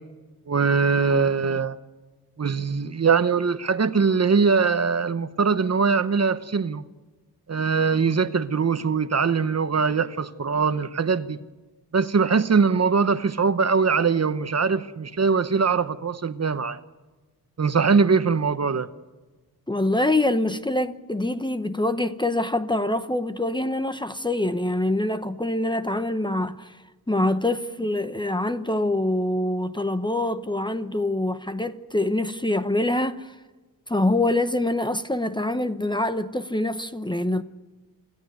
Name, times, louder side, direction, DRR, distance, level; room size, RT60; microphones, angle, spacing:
voice 1, 0.5-1.8 2.4-6.9 7.5-11.4 11.9-16.8 17.6-18.9, right 5 dB, 40° right, 0.9 m, -22 dB
voice 2, 19.7-26.8 27.1-33.3 33.9-37.4, left 1 dB, 10° left, 0.8 m, -25 dB
27.5 x 14.0 x 9.4 m
wide cardioid pair, 145°, 38 cm